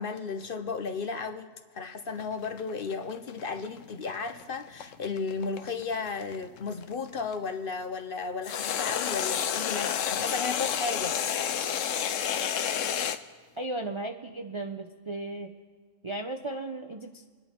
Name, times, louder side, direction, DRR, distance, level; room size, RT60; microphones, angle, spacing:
voice 1, 0.0-11.5, left 4 dB, 50° left, 8 dB, 0.9 m, -34 dB
sound 1, 2.2-7.3 8.4-13.2, left 9 dB, 80° left, 1.1 m, -30 dB
voice 2, 13.6-15.5 16.0-17.3, right 2 dB, 35° right, 4 dB, 0.5 m, -35 dB
27.5 x 10.5 x 4.4 m, 1.5 s
omnidirectional pair, 1.3 m